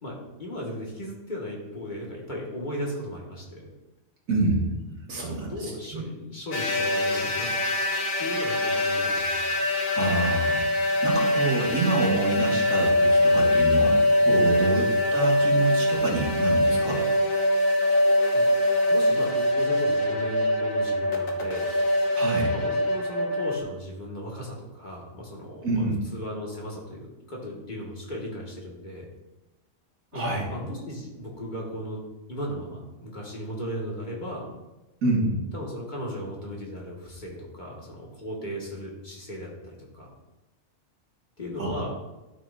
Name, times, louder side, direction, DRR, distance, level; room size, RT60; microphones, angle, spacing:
voice 1, 0.0-3.7 5.3-7.5 8.2-9.6 14.7-14.9 18.3-18.5 18.9-21.7 22.5-29.1 30.1-32.0 32.3-34.5 35.5-40.1 41.4-42.0, equal, 35° left, -3 dB, 1.8 m, -36 dB
voice 2, 4.3-6.1 9.9-10.6 11.0-17.0 22.1-22.5 25.6-26.0 30.1-30.4 35.0-35.4 41.6-41.8, right 2 dB, 90° right, -2 dB, 2.2 m, -27 dB
sound 1, 6.5-23.6, left 1 dB, 85° left, 1.4 m, -23 dB
12.0 x 5.9 x 2.5 m, 1.1 s
omnidirectional pair, 1.4 m